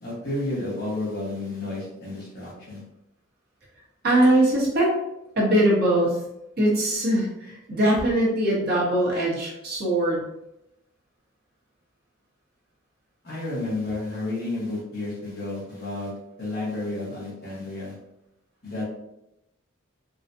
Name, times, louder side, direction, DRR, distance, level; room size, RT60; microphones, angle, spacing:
voice 1, 0.0-2.8 13.2-16.1 16.4-17.9 18.6-18.8, left 2 dB, 50° left, -6 dB, 1.4 m, -31 dB
voice 2, 4.0-4.9 5.3-6.2 6.6-10.2, right 1 dB, 50° right, -6 dB, 1.3 m, -21 dB
3.8 x 2.4 x 2.7 m, 0.85 s
head